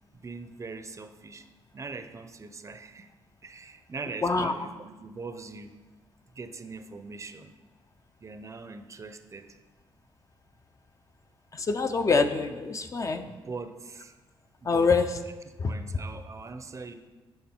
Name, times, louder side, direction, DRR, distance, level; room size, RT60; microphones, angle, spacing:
voice 1, 0.1-1.5 1.7-3.1 3.4-5.8 6.4-7.5 8.2-9.6 13.3-14.1 14.6-14.9 15.6-17.0, right 4 dB, 30° right, 9 dB, 0.6 m, -41 dB
voice 2, 4.2-4.5 11.5-13.3 14.6-15.2 15.6-15.7, left 4 dB, 35° left, 8 dB, 0.6 m, -25 dB
9.3 x 5.1 x 4.4 m, 1.2 s
cardioid pair, 90°, 10 cm